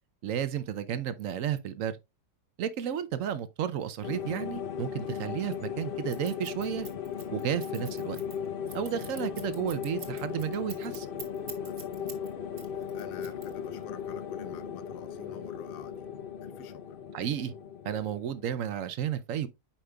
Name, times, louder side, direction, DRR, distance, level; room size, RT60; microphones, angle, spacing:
voice 1, 0.2-2.0 2.6-6.9 7.3-8.2 8.7-11.1 17.1-17.5 17.8-19.5, right 9 dB, 65° right, 0.9 m, -32 dB
sound 1, 4.0-18.6, left 8 dB, 60° left, 0.6 m, -37 dB
Scissors, 6.1-12.3 12.6-13.8, right 6 dB, 45° right, 1.4 m, -45 dB
voice 2, 11.6-12.2 12.7-16.1 16.4-17.0, left 9 dB, 80° left, 1.3 m, -48 dB
8.6 x 5.1 x 2.2 m
omnidirectional pair, 1.7 m